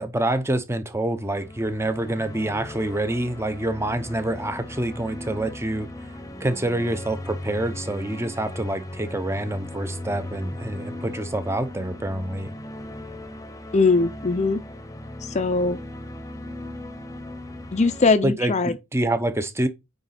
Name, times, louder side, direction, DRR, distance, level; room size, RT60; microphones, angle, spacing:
voice 1, 0.0-12.5 18.2-19.7, right 1 dB, 10° right, 0.7 m, -27 dB
sound 1, 1.2-18.2, left 1 dB, 15° left, 0.9 m, -37 dB
voice 2, 13.7-14.6 15.2-15.8 17.7-18.7, left 3 dB, 35° left, 0.5 m, -21 dB
9.0 x 3.8 x 4.1 m
head